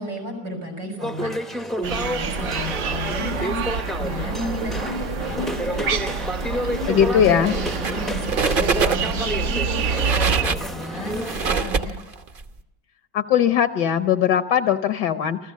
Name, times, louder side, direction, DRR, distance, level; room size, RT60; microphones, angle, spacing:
voice 1, 0.0-12.0, left 1 dB, 85° right, 4 dB, 6.9 m, -33 dB
sound 1, 1.0-11.5, equal, ahead, 0.5 m, -30 dB
sound 2, 1.8-10.4, right 6 dB, 70° right, 1.6 m, -27 dB
voice 2, 6.9-7.6 13.1-15.4, left 9 dB, 70° left, 10 dB, 1.5 m, -19 dB
sound 3, 7.6-8.0 8.3-9.2 9.8-12.4, right 5 dB, 40° right, 0.9 m, -24 dB
28.5 x 15.0 x 7.4 m, 0.95 s
omnidirectional pair, 1.9 m